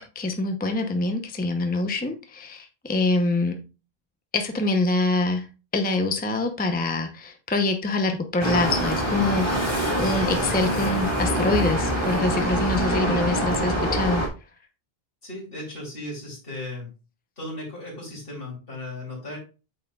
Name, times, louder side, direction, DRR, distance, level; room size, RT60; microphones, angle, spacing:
voice 1, 0.0-3.5 4.3-5.4 5.7-14.2, left 2 dB, 10° left, 5 dB, 0.6 m, -25 dB
sound 1, 8.4-14.3, equal, 30° left, 1.5 m, -25 dB
voice 2, 15.2-16.9 17.4-19.4, left 1 dB, 65° left, -2 dB, 3.1 m, -36 dB
8.7 x 5.9 x 2.3 m, 0.32 s
omnidirectional pair, 1.0 m